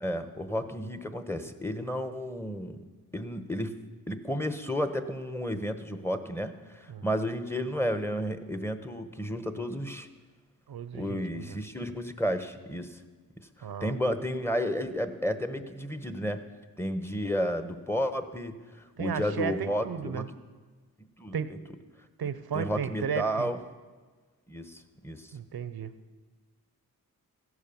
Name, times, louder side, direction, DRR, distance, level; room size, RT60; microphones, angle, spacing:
voice 1, 0.0-2.8 3.1-3.8 4.1-10.1 10.9-13.0 13.4-13.5 13.8-16.4 16.8-20.4 21.2-21.4 22.5-23.6 24.5-25.3, equal, 5° left, 9 dB, 1.1 m, -32 dB
voice 2, 10.7-11.6 13.6-13.9 19.0-20.3 21.3-21.5 22.2-23.5 25.3-25.9, right 7 dB, 80° right, 13 dB, 0.9 m, -34 dB
15.5 x 11.0 x 7.1 m, 1.4 s
wide cardioid pair, 80°, 37 cm